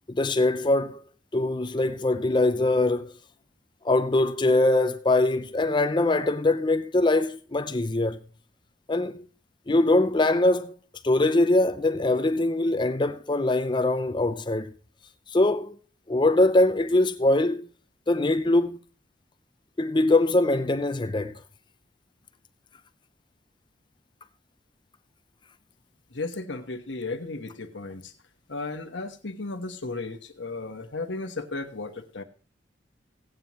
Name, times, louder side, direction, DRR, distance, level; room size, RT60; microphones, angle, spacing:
voice 1, 0.1-1.0 1.3-3.1 3.8-8.2 8.9-9.3 9.7-10.7 11.0-14.7 15.3-15.8 16.1-17.7 18.1-18.8 19.8-21.3, left 2 dB, 25° left, 0.5 m, -22 dB
voice 2, 26.1-28.1 28.5-32.2, left 3 dB, 70° left, 1.2 m, -35 dB
16.5 x 8.9 x 3.0 m
head